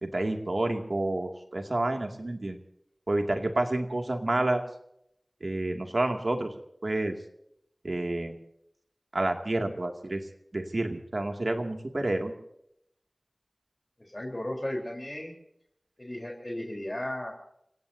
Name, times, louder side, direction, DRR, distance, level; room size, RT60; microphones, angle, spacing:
voice 1, 0.0-2.6 3.1-4.6 5.4-6.5 6.8-7.1 7.8-8.4 9.1-10.2 10.5-12.3, right 2 dB, 60° right, 3 dB, 2.4 m, -29 dB
voice 2, 14.0-15.3 16.0-17.3, left 1 dB, 35° left, 1 dB, 4.0 m, -35 dB
30.0 x 17.0 x 2.8 m, 0.75 s
wide cardioid pair, 50°, 0 cm